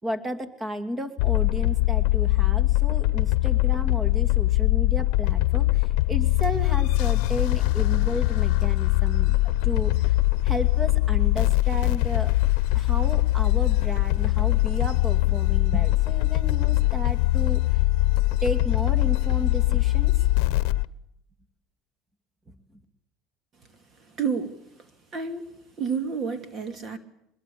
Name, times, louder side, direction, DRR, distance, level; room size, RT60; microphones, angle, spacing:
voice 1, 0.0-10.2 10.4-12.3 12.7-17.8 18.4-20.2 22.5-22.6, equal, 20° right, 10 dB, 2.7 m, -33 dB
sound 1, 1.2-20.8, left 18 dB, 75° left, 0.9 m, -22 dB
voice 2, 24.0-24.6 25.1-25.5 25.8-27.0, right 6 dB, 40° right, 10 dB, 2.5 m, -29 dB
24.0 x 21.5 x 8.6 m, 0.78 s
supercardioid pair, 115°, 0 cm